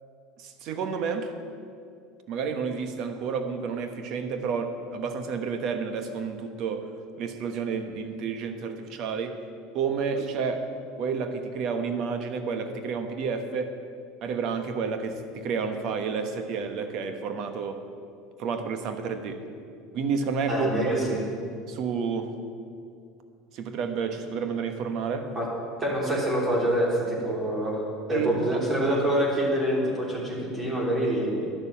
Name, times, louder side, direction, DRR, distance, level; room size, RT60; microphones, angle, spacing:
voice 1, 0.4-1.3 2.3-9.4 9.7-10.7 11.0-13.8 14.2-17.8 18.4-19.4 19.9-20.9 21.7-22.3 23.5-25.3 28.1-28.6, right 5 dB, 55° right, 7 dB, 1.2 m, -30 dB
voice 2, 20.5-21.2 25.3-25.5 25.8-27.8 28.1-31.5, right 1 dB, 20° right, -4 dB, 3.5 m, -26 dB
11.0 x 6.8 x 8.7 m, 2.4 s
supercardioid pair, 105°, 0 cm